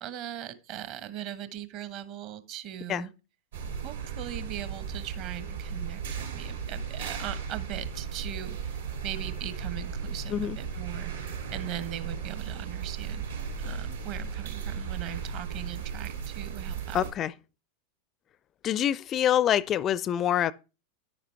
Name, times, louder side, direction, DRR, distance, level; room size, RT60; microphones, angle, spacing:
voice 1, 0.0-3.1 3.8-13.3 13.6-17.1, right 11 dB, 40° right, 1.2 m, -40 dB
sound 1, 3.5-17.1, right 6 dB, 70° right, 3.0 m, -36 dB
voice 2, 16.9-17.3 18.6-20.5, left 10 dB, 30° left, 0.4 m, -25 dB
10.5 x 9.5 x 3.4 m
figure-of-eight pair, 90°, 0 cm